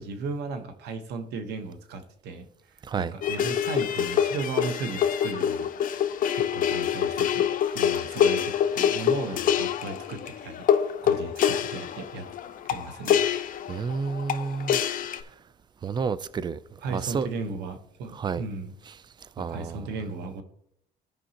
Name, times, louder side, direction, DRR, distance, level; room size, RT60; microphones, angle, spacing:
voice 1, 0.0-2.5 2.7-6.1 6.3-7.5 7.7-12.3 12.6-13.2 16.8-18.7 19.4-20.4, right 4 dB, 80° right, 1.2 m, -36 dB
voice 2, 2.8-3.1 13.7-14.8 15.8-17.3 18.1-18.4 19.4-19.9, right 5 dB, 25° right, 0.4 m, -30 dB
sound 1, 3.2-15.2, left 9 dB, 55° left, 0.6 m, -26 dB
15.5 x 5.3 x 2.9 m
cardioid pair, 110°, 17 cm